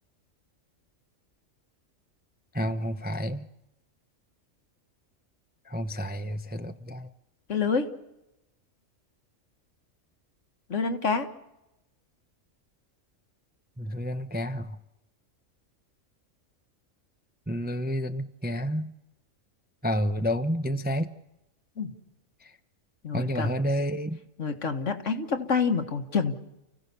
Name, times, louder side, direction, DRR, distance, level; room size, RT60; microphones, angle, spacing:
voice 1, 2.5-3.5 5.6-7.1 13.8-14.8 17.5-18.9 19.8-21.1 22.4-22.5 23.1-24.2, equal, 10° right, 9 dB, 0.6 m, -30 dB
voice 2, 7.5-7.9 10.7-11.3 21.8-21.9 23.0-23.7 24.4-26.4, left 5 dB, 65° left, 7 dB, 1.9 m, -27 dB
29.5 x 16.0 x 6.9 m, 0.92 s
omnidirectional pair, 1.4 m